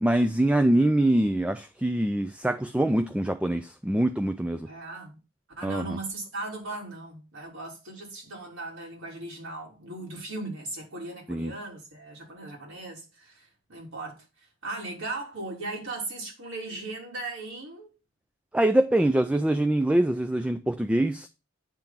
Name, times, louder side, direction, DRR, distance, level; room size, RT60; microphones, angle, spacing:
voice 1, 0.0-4.7 5.6-6.0 11.3-11.5 18.5-21.3, right 1 dB, 5° right, 0.3 m, -24 dB
voice 2, 4.6-5.2 5.6-14.2 14.6-17.9, right 2 dB, 85° right, 3.4 m, -38 dB
8.8 x 3.6 x 5.9 m
head